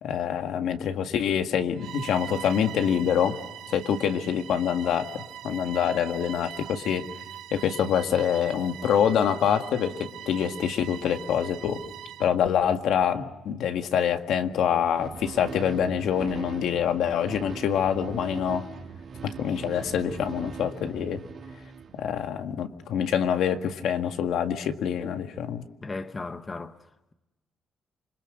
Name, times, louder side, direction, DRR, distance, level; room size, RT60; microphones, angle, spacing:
voice 1, 0.0-3.4 3.7-7.0 7.5-11.8 12.2-18.6 19.2-21.2 21.9-25.7, left 8 dB, 80° left, 1.9 m, -26 dB
Bowed string instrument, 1.8-12.4, right 11 dB, 85° right, 1.1 m, -41 dB
sound 1, 14.9-22.4, right 5 dB, 45° right, 2.4 m, -41 dB
voice 2, 25.8-27.1, left 3 dB, 20° left, 0.9 m, -37 dB
27.0 x 26.0 x 6.5 m
cardioid pair, 160°, 0 cm